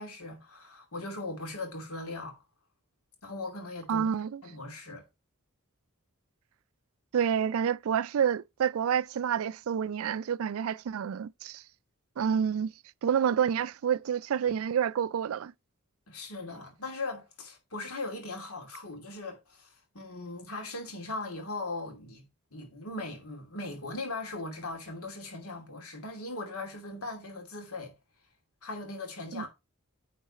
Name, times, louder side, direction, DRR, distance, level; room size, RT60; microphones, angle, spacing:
voice 1, 0.0-2.4 3.2-4.1 4.4-5.0 16.1-27.9 28.6-29.5, left 2 dB, 90° left, 2.6 m, -39 dB
voice 2, 3.9-4.4 7.1-11.6 12.2-12.7 13.0-15.5 29.3-29.5, right 8 dB, 70° right, 0.3 m, -28 dB
9.4 x 4.0 x 4.1 m
head